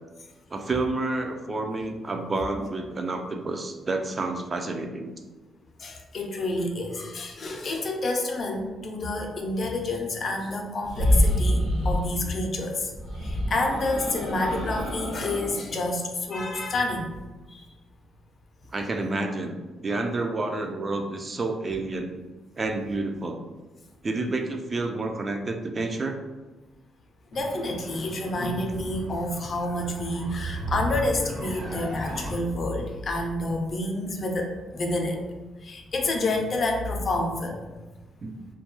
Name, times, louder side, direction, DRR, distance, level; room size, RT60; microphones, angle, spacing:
voice 1, 0.5-5.1 18.7-22.1 22.6-23.4 24.0-26.1 38.2-38.3, right 2 dB, 35° right, 4 dB, 0.3 m, -29 dB
voice 2, 5.8-12.9 13.2-17.1 17.5-17.6 27.3-35.2 35.6-37.7, left 2 dB, 45° left, 2 dB, 0.4 m, -29 dB
sound 1, 10.8-12.1 12.9-15.6, equal, 90° right, 0.8 m, -25 dB
sound 2, 27.3-32.3, right 2 dB, 55° right, 0.7 m, -35 dB
2.2 x 2.2 x 3.0 m, 1.2 s
cardioid pair, 90°, 0 cm